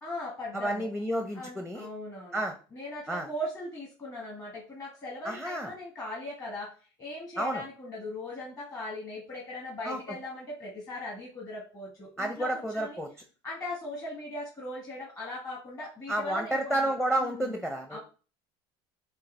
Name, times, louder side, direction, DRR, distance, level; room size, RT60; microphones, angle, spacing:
voice 1, 0.0-0.9 1.3-2.4 2.7-6.7 7.0-13.0 13.4-16.9 17.2-17.6 17.9-18.0, left 1 dB, 25° left, -3 dB, 1.3 m, -39 dB
voice 2, 0.5-1.9 2.3-2.6 3.1-3.3 5.2-5.7 7.4-7.6 9.8-10.0 12.2-13.1 16.1-18.0, right 1 dB, 5° left, 4 dB, 0.6 m, -30 dB
6.4 x 2.3 x 3.3 m, 0.37 s
supercardioid pair, 105°, 13 cm